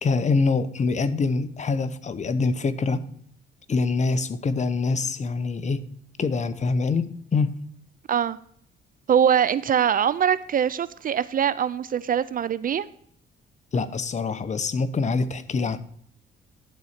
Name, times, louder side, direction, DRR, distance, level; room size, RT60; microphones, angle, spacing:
voice 1, 0.0-3.0 3.7-5.8 6.2-7.1 7.3-7.5 13.7-15.8, left 4 dB, 35° left, 13 dB, 0.8 m, -24 dB
voice 2, 9.1-12.9, right 8 dB, 45° right, 16 dB, 0.4 m, -22 dB
11.5 x 4.1 x 6.5 m, 0.64 s
cardioid pair, 90°, 20 cm